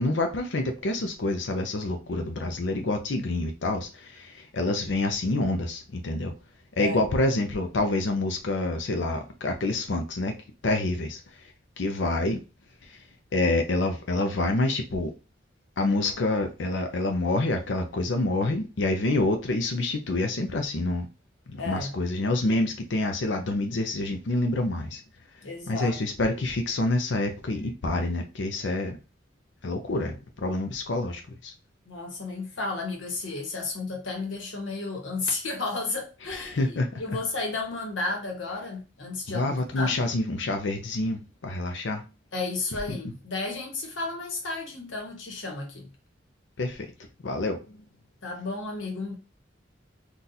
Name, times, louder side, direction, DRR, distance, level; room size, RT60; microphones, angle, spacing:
voice 1, 0.0-6.3 6.8-11.5 11.8-12.4 12.8-13.0 13.3-15.1 15.8-21.1 21.5-25.0 25.7-29.0 29.6-31.5 36.2-37.0 39.3-42.0 46.6-46.9 47.2-47.9, left 2 dB, 70° left, 0.5 m, -27 dB
voice 2, 21.5-21.9 25.4-26.0 31.8-40.0 42.3-45.9 48.2-49.1, left 3 dB, 90° left, 1.2 m, -33 dB
3.9 x 2.4 x 2.7 m
head